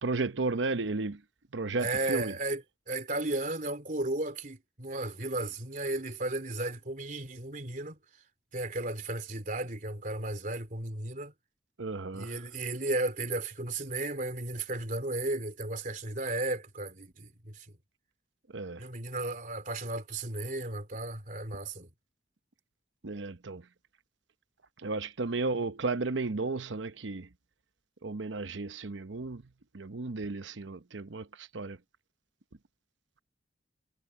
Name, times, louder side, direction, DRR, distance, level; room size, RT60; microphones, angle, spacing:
voice 1, 0.0-1.2 1.5-2.3 11.8-12.4 18.5-18.8 23.0-23.7 24.8-27.3 28.0-29.4 29.7-31.8, right 3 dB, 80° right, 0.9 m, -34 dB
voice 2, 1.8-2.6 2.9-8.0 8.5-11.3 12.1-17.7 18.8-21.9, right 2 dB, 45° right, 3.4 m, -34 dB
head